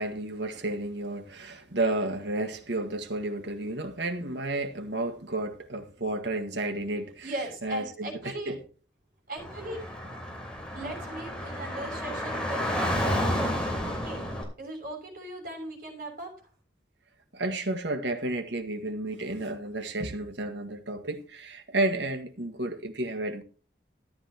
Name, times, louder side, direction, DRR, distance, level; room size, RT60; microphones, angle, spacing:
voice 1, 0.0-7.3 7.6-8.6 17.3-23.4, right 2 dB, 75° right, 1.7 m, -32 dB
voice 2, 7.2-8.6 9.3-9.8 10.7-14.2 14.6-16.5, right 1 dB, 50° right, 6.3 m, -38 dB
Car / Traffic noise roadway noise, 9.4-14.4, equal, 5° left, 3.1 m, -31 dB
14.0 x 10.5 x 3.0 m
head